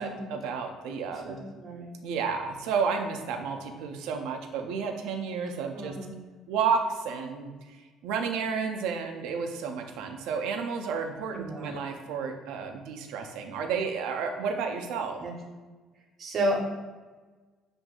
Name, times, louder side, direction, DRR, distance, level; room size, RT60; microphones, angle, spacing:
voice 1, 0.0-1.4 2.0-6.0 6.5-7.8 8.0-15.2, right 5 dB, 90° right, 4 dB, 0.5 m, -31 dB
voice 2, 1.2-1.9 5.7-6.2 11.3-11.7 15.2-15.3 16.2-16.6, right 1 dB, 40° right, 1 dB, 0.8 m, -32 dB
7.4 x 2.6 x 2.4 m, 1.3 s
cardioid pair, 145°, 0 cm